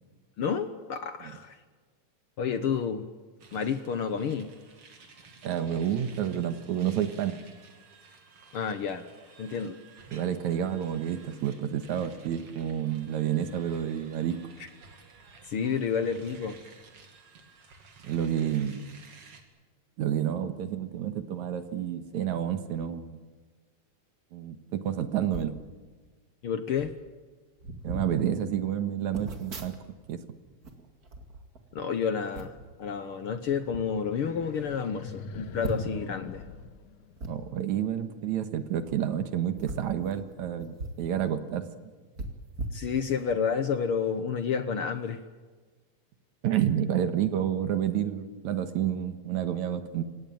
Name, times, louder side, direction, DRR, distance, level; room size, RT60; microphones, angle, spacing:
voice 1, 0.4-1.6 2.4-3.1 3.5-4.5 8.5-9.1 9.4-9.8 15.5-16.6 26.4-26.9 31.7-36.4 42.7-45.2, left 6 dB, 60° left, 10 dB, 1.5 m, -30 dB
sound 1, 3.4-19.4, right 4 dB, 50° right, 3.4 m, -53 dB
voice 2, 5.4-7.4 10.1-14.4 18.0-18.9 20.0-23.2 24.3-25.6 27.8-29.7 30.1-30.2 37.3-41.7 46.4-50.0, right 10 dB, 75° right, 9 dB, 2.7 m, -29 dB
sound 2, 25.3-25.6 26.4-26.5 26.7-27.0 27.6-28.1 29.1-30.2 30.5-31.8 32.3-32.7 33.4-33.8 34.4-34.5 34.7-34.8 35.6-36.1 37.2-37.3 38.8-39.0 39.5-41.0 41.4-41.5 42.1-43.4 43.8-44.0, right 2 dB, 30° right, 2.4 m, -39 dB
sound 3, 34.2-37.6, left 6 dB, 80° left, 2.7 m, -43 dB
27.5 x 17.0 x 9.2 m, 1.4 s
omnidirectional pair, 3.4 m